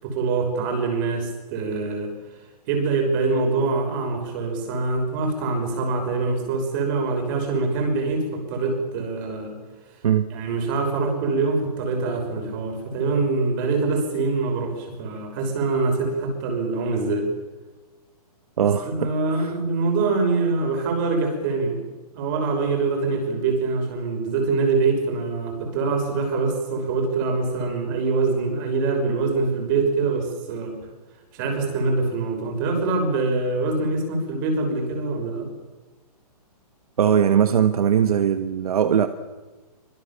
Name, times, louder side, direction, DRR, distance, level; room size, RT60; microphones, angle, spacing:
voice 1, 0.0-2.1 2.7-9.5 10.3-17.3 18.6-21.8 22.1-30.7 31.3-35.5, right 3 dB, 30° right, 4 dB, 6.1 m, -24 dB
voice 2, 18.6-19.1 19.4-19.5 37.0-39.1, right 8 dB, 65° right, 9 dB, 1.5 m, -20 dB
25.5 x 22.5 x 7.4 m, 1.3 s
hypercardioid pair, 165°, 20 cm